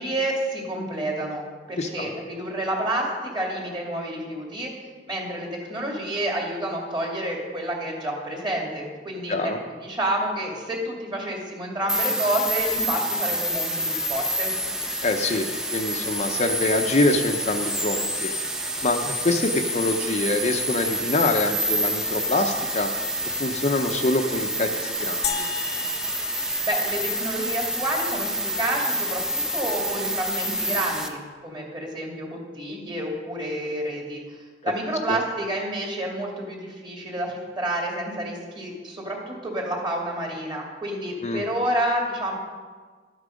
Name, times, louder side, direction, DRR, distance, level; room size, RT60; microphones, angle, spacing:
voice 1, 0.0-4.7 5.1-9.5 9.8-14.5 26.6-34.2 34.6-42.3, right 1 dB, 25° right, -1 dB, 2.5 m, -29 dB
voice 2, 1.8-2.1 9.3-9.6 15.0-18.3 18.8-22.9 23.2-25.5 35.1-35.2 41.2-41.4, left 2 dB, 40° left, 4 dB, 0.7 m, -25 dB
sound 1, 11.9-31.1, equal, 5° right, 0.9 m, -28 dB
sound 2, 25.2-27.7, left 8 dB, 65° left, 0.9 m, -34 dB
12.5 x 8.4 x 5.2 m, 1.5 s
head